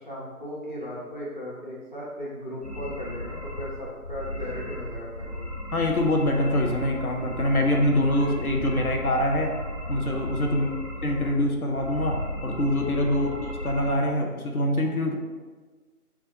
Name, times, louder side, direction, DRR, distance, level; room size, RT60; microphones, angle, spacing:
voice 1, 0.0-5.4 10.5-10.8 13.1-13.4, equal, 35° left, -7 dB, 0.6 m, -37 dB
sound 1, 2.6-13.9, left 1 dB, 50° left, 1.3 m, -35 dB
voice 2, 5.7-9.5 9.9-10.7 11.0-15.2, left 1 dB, 70° left, 1 dB, 0.8 m, -24 dB
4.2 x 2.4 x 4.6 m, 1.4 s
figure-of-eight pair, 165°, 45 cm